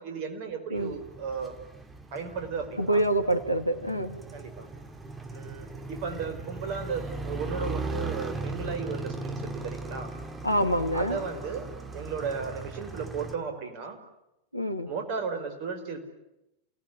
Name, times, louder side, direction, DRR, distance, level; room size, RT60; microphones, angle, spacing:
voice 1, 0.0-1.5 2.1-3.0 4.3-4.7 5.3-10.1 10.9-11.7 11.9-14.0 14.9-16.0, right 5 dB, 45° right, 6 dB, 5.3 m, -35 dB
Motorcycle, 0.8-13.3, right 2 dB, 15° right, 2.5 m, -38 dB
voice 2, 2.8-4.2 10.4-11.2 14.5-14.9, right 1 dB, 90° left, 9 dB, 2.0 m, -26 dB
29.0 x 19.0 x 10.0 m, 0.89 s
figure-of-eight pair, 90°, 0 cm